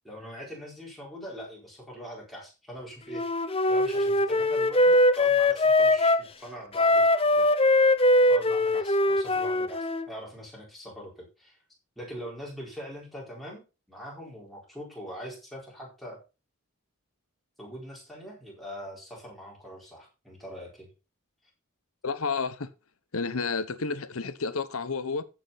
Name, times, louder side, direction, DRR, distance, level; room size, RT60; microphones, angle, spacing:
voice 1, 0.0-7.5 8.3-11.6 12.0-16.2 17.6-20.9, equal, ahead, 4.4 m, -42 dB
Wind instrument woodwind instrument, 3.1-6.3 6.7-10.1, left 1 dB, 25° left, 0.7 m, -22 dB
voice 2, 22.0-22.7 23.1-25.2, left 4 dB, 85° left, 1.0 m, -30 dB
14.5 x 6.2 x 4.1 m
head